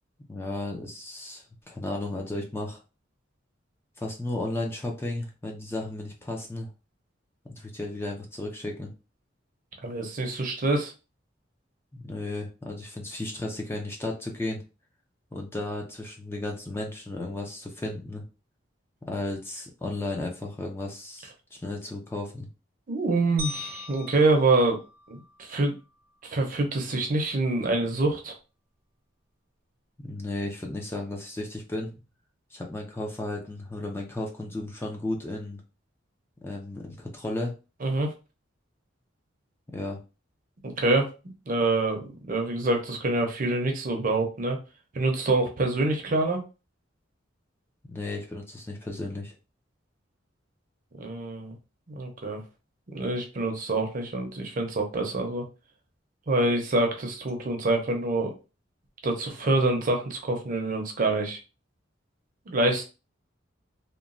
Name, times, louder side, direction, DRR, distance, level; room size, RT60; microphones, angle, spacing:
voice 1, 0.3-2.8 4.0-6.7 7.5-8.9 11.9-14.6 15.3-18.2 19.1-22.5 30.0-31.9 32.5-35.6 36.4-37.5 39.7-40.0 47.8-49.3, left 2 dB, 15° left, 1 dB, 0.4 m, -34 dB
voice 2, 9.8-10.9 22.9-24.8 25.1-25.7 26.2-28.3 37.8-38.1 40.6-41.1 41.5-44.6 44.9-46.4 51.0-51.6 51.9-52.4 52.9-55.4 56.3-58.3 59.0-61.4 62.5-62.8, right 2 dB, 45° right, 3 dB, 0.6 m, -26 dB
sound 1, 23.4-25.7, left 2 dB, 85° right, 0.6 m, -40 dB
2.9 x 2.1 x 2.5 m, 0.31 s
head